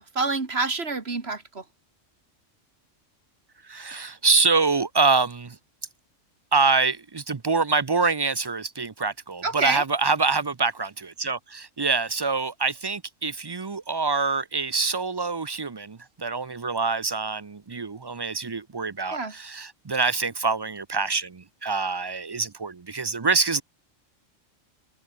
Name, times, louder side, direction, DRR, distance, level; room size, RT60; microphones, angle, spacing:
voice 1, 0.0-1.6 9.4-9.8 19.1-19.3, right 3 dB, 55° right, 2.4 m, -27 dB
voice 2, 3.6-5.6 6.5-23.6, right 4 dB, 35° right, 0.4 m, -25 dB
omnidirectional pair, 1.3 m